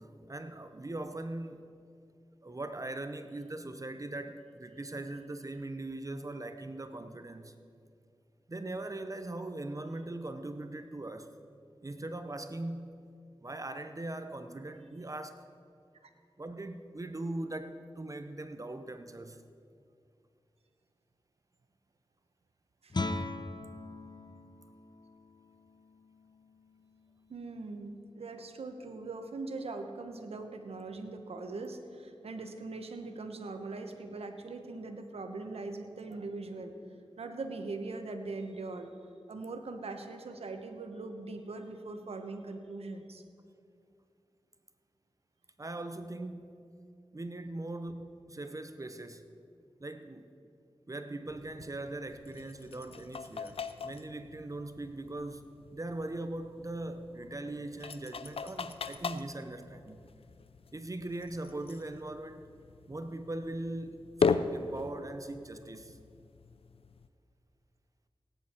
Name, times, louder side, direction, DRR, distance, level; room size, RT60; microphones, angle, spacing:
voice 1, 0.0-1.7 2.4-7.5 8.5-11.3 11.8-13.1 13.4-15.5 16.4-19.4 45.6-46.6 47.1-49.3 49.8-50.3 50.9-55.5 55.7-60.0 60.7-62.5 62.9-66.0, right 2 dB, 35° right, 9 dB, 0.8 m, -40 dB
Guitar, 22.9-28.5, left 2 dB, 45° left, 0.8 m, -41 dB
voice 2, 27.3-36.8 37.2-38.9 39.3-43.2, right 3 dB, 90° right, 6 dB, 1.0 m, -41 dB
sound 1, 51.3-67.1, left 5 dB, 70° left, 0.5 m, -39 dB
18.0 x 9.9 x 4.4 m, 2.4 s
cardioid pair, 45°, 10 cm